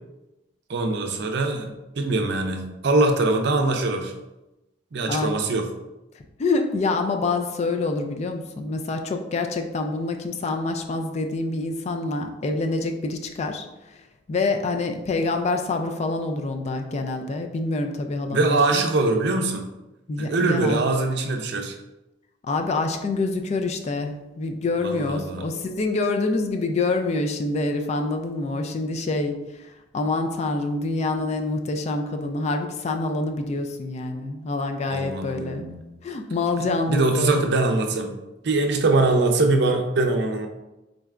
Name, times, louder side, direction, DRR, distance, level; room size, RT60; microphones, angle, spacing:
voice 1, 0.7-4.1 4.9-5.7 18.3-19.7 20.2-21.8 24.8-25.5 34.9-35.8 36.9-38.1 38.4-40.5, right 2 dB, 65° right, 4 dB, 0.5 m, -23 dB
voice 2, 6.4-14.0 14.3-18.8 20.1-20.8 22.4-35.7 36.0-37.4, left 3 dB, 35° left, 5 dB, 0.3 m, -26 dB
3.8 x 3.2 x 2.4 m, 0.97 s
head